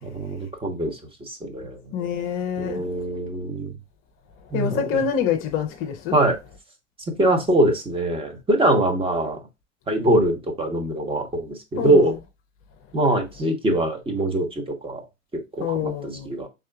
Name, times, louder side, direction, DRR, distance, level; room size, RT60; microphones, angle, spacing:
voice 1, 0.0-1.0 1.3-1.8 2.6-3.7 4.5-5.0 6.1-6.4 7.1-9.4 9.9-12.2 12.9-15.0 15.5-16.5, right 1 dB, 15° right, 1.0 m, -23 dB
voice 2, 1.9-2.8 4.5-6.2 11.8-12.1 15.6-16.3, left 8 dB, 35° left, 0.7 m, -26 dB
5.5 x 3.7 x 2.3 m
figure-of-eight pair, 85°, 39 cm